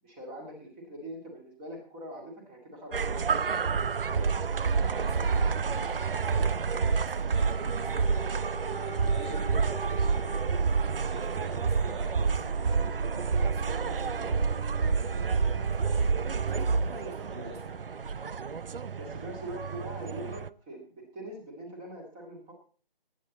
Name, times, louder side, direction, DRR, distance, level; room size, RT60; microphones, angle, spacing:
voice 1, 0.0-3.4 4.1-4.3 16.9-17.5 18.9-22.5, right 1 dB, 10° right, 2 dB, 2.0 m, -43 dB
sound 1, 2.9-20.5, right 5 dB, 70° right, 0.7 m, -29 dB
voice 2, 4.1-8.2 8.7-10.4 10.9-14.4 14.8-17.8, right 2 dB, 30° right, 1 dB, 4.0 m, -47 dB
sound 2, 7.4-16.5 17.2-17.3, left 2 dB, 65° left, 1.6 m, -46 dB
19.0 x 8.8 x 4.0 m, 0.40 s
figure-of-eight pair, 170°, 29 cm